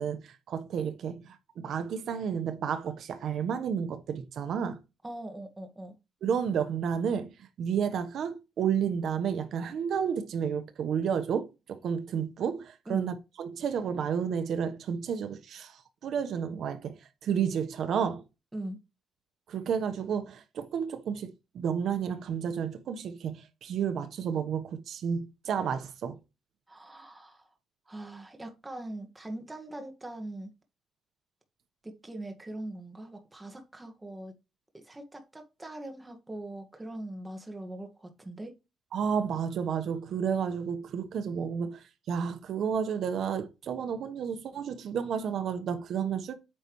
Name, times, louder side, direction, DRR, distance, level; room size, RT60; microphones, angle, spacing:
voice 1, 0.0-4.8 6.2-7.3 7.6-18.2 19.5-26.2 38.9-46.3, right 7 dB, 65° right, 1.0 m, -31 dB
voice 2, 5.0-6.0 12.9-13.1 18.5-18.8 26.7-27.5 27.9-30.5 31.8-34.3 34.7-38.6, right 1 dB, 15° right, 1.7 m, -41 dB
9.0 x 5.6 x 3.1 m
cardioid pair, 130°, 0 cm